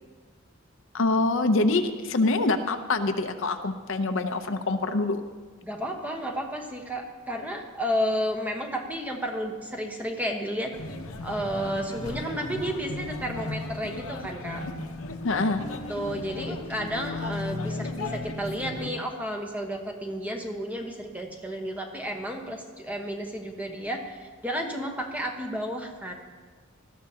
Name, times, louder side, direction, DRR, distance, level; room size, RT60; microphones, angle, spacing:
voice 1, 0.9-5.2 15.2-15.6, left 2 dB, 65° left, 8 dB, 0.7 m, -25 dB
voice 2, 5.6-10.7 11.2-14.6 15.9-26.1, equal, 5° right, 2 dB, 1.1 m, -32 dB
sound 1, 10.7-18.9, left 2 dB, 85° left, 1.0 m, -35 dB
18.5 x 13.5 x 2.9 m, 1.5 s
head